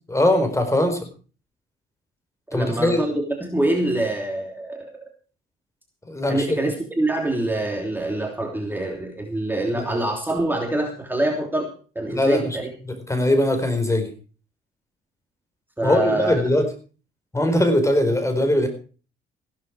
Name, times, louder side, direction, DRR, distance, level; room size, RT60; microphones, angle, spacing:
voice 1, 0.1-1.1 2.5-3.0 6.1-6.6 9.7-9.8 12.1-12.6 12.9-14.1 15.8-16.6 17.3-18.7, left 1 dB, 15° left, 7 dB, 4.5 m, -21 dB
voice 2, 2.5-5.0 6.3-11.7 11.9-12.7 15.8-16.5, right 2 dB, 10° right, 2 dB, 3.1 m, -25 dB
16.0 x 12.5 x 4.7 m, 0.39 s
cardioid pair, 90°, 20 cm